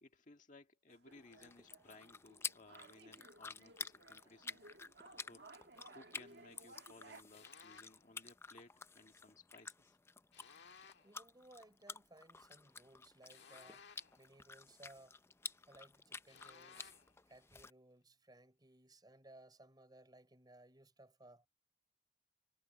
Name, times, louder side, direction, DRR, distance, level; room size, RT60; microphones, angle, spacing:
voice 1, 0.0-4.6 5.3-5.5 5.9-10.0, left 2 dB, 45° left, 1.7 m, -61 dB
sound 1, 0.9-7.2, right 2 dB, 70° right, 1.7 m, -60 dB
sound 2, 1.1-17.7, left 4 dB, 15° left, 0.4 m, -51 dB
sound 3, 7.3-8.0 10.3-11.2 13.3-14.3 16.3-17.2, left 6 dB, 80° left, 1.7 m, -59 dB
voice 2, 11.0-13.8 14.2-15.2 15.7-16.9 17.3-21.5, right 1 dB, 25° right, 4.2 m, -61 dB
head